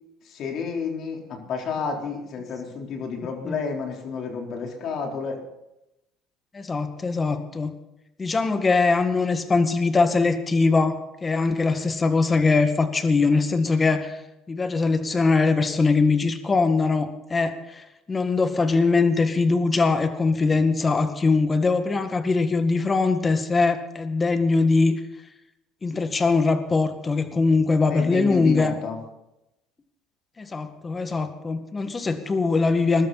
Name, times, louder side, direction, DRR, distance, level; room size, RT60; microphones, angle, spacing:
voice 1, 0.3-5.4 27.9-29.0, left 5 dB, 60° left, 1 dB, 3.9 m, -30 dB
voice 2, 6.5-7.8 8.2-14.2 14.5-24.9 25.8-28.8 30.4-33.1, left 3 dB, 25° left, 8 dB, 1.9 m, -22 dB
21.0 x 12.5 x 4.2 m, 0.90 s
supercardioid pair, 85°, 0 cm